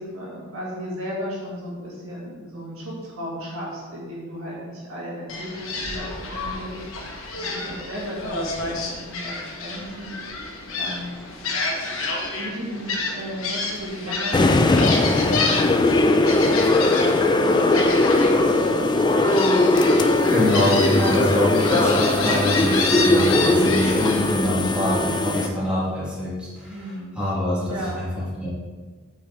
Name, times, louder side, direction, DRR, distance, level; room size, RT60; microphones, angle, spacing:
voice 1, 0.0-10.4 10.7-11.1 12.3-15.8 16.9-18.9 26.7-27.1 27.7-28.0, equal, 75° right, -5 dB, 2.3 m, -35 dB
Gull seagull, 5.3-24.4, left 3 dB, 70° left, 1.1 m, -29 dB
sound 1, 14.3-25.5, left 2 dB, 20° left, 0.4 m, -19 dB
voice 2, 20.3-26.8 27.2-28.5, left 1 dB, 5° right, -8 dB, 2.1 m, -24 dB
8.6 x 5.5 x 3.4 m, 1.4 s
head